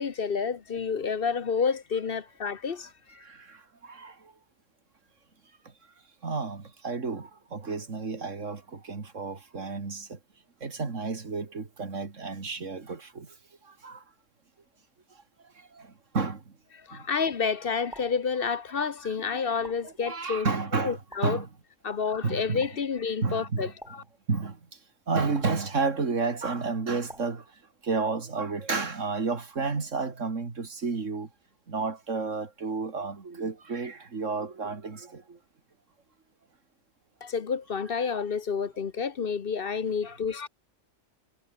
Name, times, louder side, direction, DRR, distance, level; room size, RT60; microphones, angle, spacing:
voice 1, 0.0-3.2 16.8-20.5 20.7-21.4 21.8-24.0 37.2-40.5, left 6 dB, 50° left, 1.1 m, -29 dB
voice 2, 3.2-4.3 6.2-10.2 10.6-13.3 13.7-14.0 15.7-16.4 16.9-17.0 19.8-21.0 21.2-21.5 22.2-22.7 23.2-23.7 24.3-24.6 25.1-27.4 27.8-31.3 31.7-35.4, right 4 dB, 80° right, 2.7 m, -31 dB
sound 1, 17.9-18.3 19.6-20.0 21.1-21.5 22.6-22.9 23.8-24.2 25.3-25.7 27.1-27.5, equal, ahead, 2.9 m, -49 dB
omnidirectional pair, 1.3 m